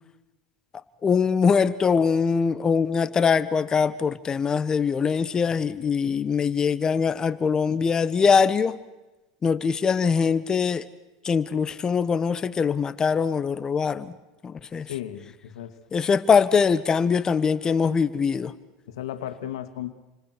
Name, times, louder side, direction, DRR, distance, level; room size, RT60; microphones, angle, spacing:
voice 1, 0.7-8.8 9.4-10.9 11.2-14.2 14.4-14.9 15.9-18.5, left 6 dB, 25° left, 14 dB, 1.3 m, -22 dB
voice 2, 14.9-15.8 18.9-19.9, left 11 dB, 85° left, 8 dB, 2.4 m, -35 dB
29.5 x 25.0 x 6.3 m, 1.1 s
supercardioid pair, 120°, 3 cm